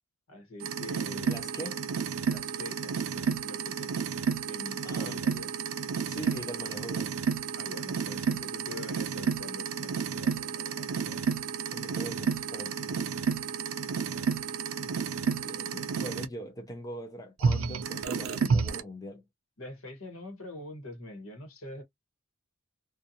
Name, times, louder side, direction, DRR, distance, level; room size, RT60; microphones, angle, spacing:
voice 1, 0.3-1.4 2.3-4.0 4.5-5.7 7.5-11.2 14.0-15.9 19.6-21.8, left 1 dB, 70° left, 1.1 m, -45 dB
sound 1, 0.6-16.3 17.4-18.8, right 6 dB, 70° right, 0.4 m, -31 dB
voice 2, 1.3-1.8 4.8-5.2 6.1-7.1 11.7-13.1 15.2-19.2, equal, 15° left, 0.5 m, -41 dB
2.5 x 2.4 x 2.6 m
head